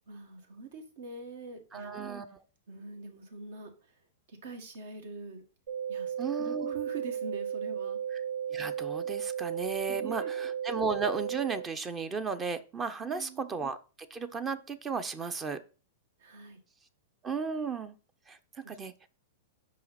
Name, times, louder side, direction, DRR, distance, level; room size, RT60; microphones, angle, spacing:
voice 1, 0.1-1.9 2.7-3.9 4.3-5.4 5.9-8.0 9.9-10.5 13.0-13.4 16.2-16.6 18.6-18.8, right 3 dB, 70° right, 6 dB, 1.6 m, -44 dB
voice 2, 1.7-2.4 6.2-6.7 8.1-8.2 8.5-13.8 14.1-15.6 17.2-18.0 18.3-19.1, right 5 dB, 20° right, 12 dB, 0.6 m, -35 dB
sound 1, 5.7-11.7, right 8 dB, 85° right, 2.1 m, -35 dB
5.6 x 5.0 x 4.1 m, 0.35 s
hypercardioid pair, 125°, 0 cm